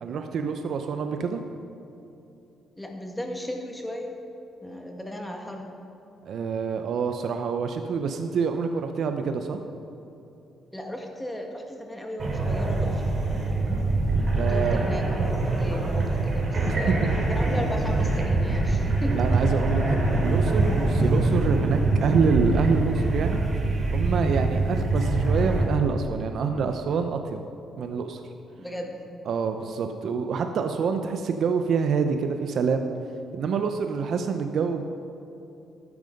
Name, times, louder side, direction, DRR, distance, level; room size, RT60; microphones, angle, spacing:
voice 1, 0.0-1.4 6.3-9.6 14.3-14.8 16.6-17.1 19.1-23.4 23.9-27.4 27.8-28.2 29.3-32.9 33.3-34.8, right 5 dB, 65° right, 6 dB, 0.7 m, -27 dB
voice 2, 2.8-4.2 4.6-5.6 10.7-13.0 14.4-16.9 17.3-19.2 28.6-29.0, equal, 10° left, 2 dB, 1.8 m, -35 dB
sound 1, 12.2-25.6, right 2 dB, 40° right, 3.4 m, -24 dB
13.0 x 9.6 x 5.3 m, 2.8 s
cardioid pair, 90°, 0 cm